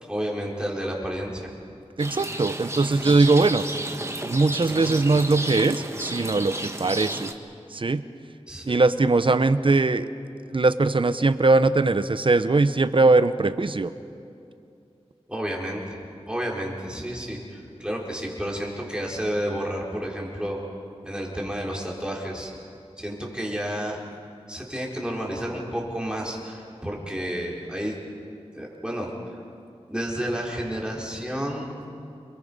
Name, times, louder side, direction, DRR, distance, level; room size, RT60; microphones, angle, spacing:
voice 1, 0.1-1.5 8.5-8.8 15.3-16.0 16.3-20.6 21.0-22.5 23.0-24.0 24.5-28.0 28.5-29.4 29.9-31.8, equal, 10° right, -3 dB, 4.4 m, -31 dB
Rain, 2.0-7.3, right 1 dB, 25° right, 1.4 m, -32 dB
voice 2, 2.0-3.6 4.3-7.3 7.7-8.0 8.7-10.1 10.5-13.9, right 3 dB, 50° right, 12 dB, 0.8 m, -21 dB
29.0 x 22.5 x 5.5 m, 2.6 s
wide cardioid pair, 70°, 11 cm